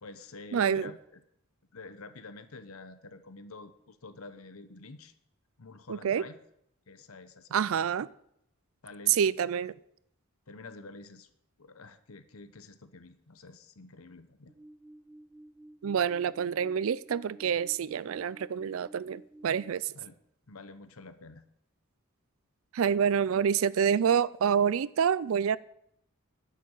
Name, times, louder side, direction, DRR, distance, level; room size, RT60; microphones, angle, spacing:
voice 1, 0.0-1.2 1.7-5.1 5.6-6.4 6.9-7.9 8.8-9.3 10.5-11.3 11.6-14.5 19.9-20.2 20.5-21.5, left 3 dB, 85° left, 1.0 m, -48 dB
voice 2, 0.5-0.9 5.9-6.2 7.5-8.1 9.1-9.7 15.8-19.9 22.7-25.6, right 7 dB, 75° right, 0.4 m, -27 dB
sound 1, 14.5-19.7, right 1 dB, 10° right, 1.2 m, -53 dB
11.0 x 6.9 x 8.8 m
head